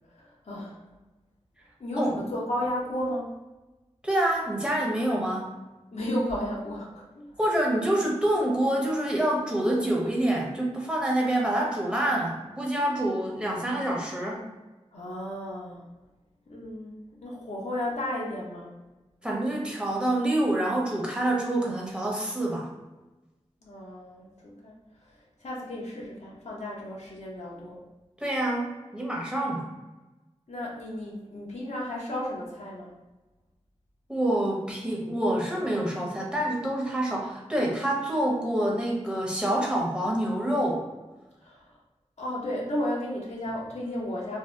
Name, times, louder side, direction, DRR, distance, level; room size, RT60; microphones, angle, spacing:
voice 1, 0.1-0.8 1.8-3.3 5.9-7.3 14.9-15.8 16.5-18.7 23.6-24.7 25.1-27.8 30.5-32.9 41.4-41.7 42.2-44.4, left 1 dB, 75° left, -4 dB, 0.7 m, -33 dB
voice 2, 4.0-5.6 7.4-14.4 19.2-22.7 28.2-29.7 34.1-40.8, right 1 dB, 10° right, -2 dB, 0.8 m, -27 dB
2.7 x 2.1 x 3.3 m, 1.1 s
wide cardioid pair, 45°, 12 cm